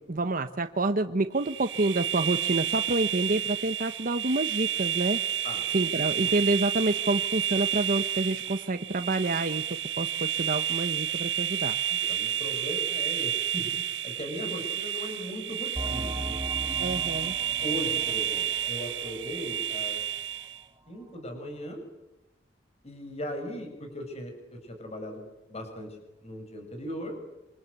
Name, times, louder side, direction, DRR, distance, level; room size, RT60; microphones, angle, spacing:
voice 1, 0.0-5.2 5.7-12.1 16.8-17.3, right 2 dB, 50° right, 8 dB, 1.0 m, -28 dB
sound 1, 1.4-20.6, right 10 dB, 75° right, 0.9 m, -30 dB
voice 2, 12.1-16.8 17.6-20.0 20.9-21.8 22.8-27.2, equal, 35° left, 5 dB, 5.8 m, -38 dB
sound 2, 15.7-20.0 20.3-20.4 21.0-21.1, right 1 dB, 20° right, 1.7 m, -39 dB
27.5 x 26.0 x 8.1 m, 0.97 s
head